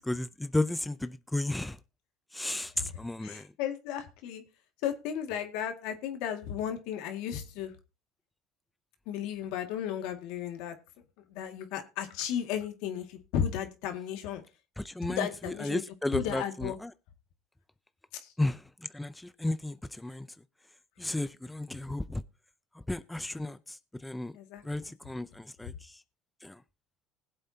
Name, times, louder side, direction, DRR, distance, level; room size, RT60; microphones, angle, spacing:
voice 1, 0.0-1.8 2.3-3.4 14.8-15.3 15.6-16.9 18.4-18.6 18.9-20.3 21.0-22.2 22.9-23.8 24.0-24.3 24.6-25.7 26.4-26.6, left 2 dB, 5° left, 0.6 m, -33 dB
voice 2, 3.2-4.4 4.8-7.7 9.1-10.8 11.3-14.4 15.0-15.8 16.1-16.8 18.2-18.3 24.3-24.6, left 9 dB, 75° left, 2.1 m, -34 dB
20.5 x 7.8 x 2.8 m
supercardioid pair, 110°, 0 cm